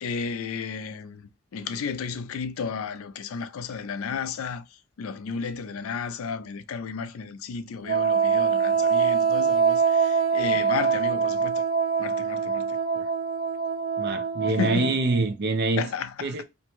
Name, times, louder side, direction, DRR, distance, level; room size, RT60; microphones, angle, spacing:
voice 1, 0.0-4.6 5.0-11.6 12.0-12.8 14.5-14.9 15.8-16.3, left 6 dB, 80° left, 0.4 m, -33 dB
Wind instrument woodwind instrument, 7.9-15.2, right 6 dB, 90° right, 1.1 m, -24 dB
voice 2, 14.0-15.9 16.2-16.4, right 3 dB, 55° right, 0.5 m, -25 dB
2.6 x 2.1 x 2.9 m
head